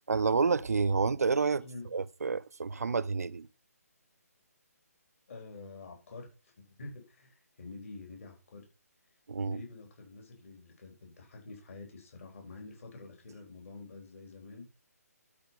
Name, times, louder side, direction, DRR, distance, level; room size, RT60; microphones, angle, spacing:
voice 1, 0.1-1.6 1.9-3.5 9.3-9.6, right 4 dB, 70° right, 0.5 m, -29 dB
voice 2, 1.6-1.9 5.3-8.6 9.4-14.6, left 3 dB, 55° left, 4.0 m, -48 dB
12.0 x 4.3 x 5.6 m
figure-of-eight pair, 140°, 9 cm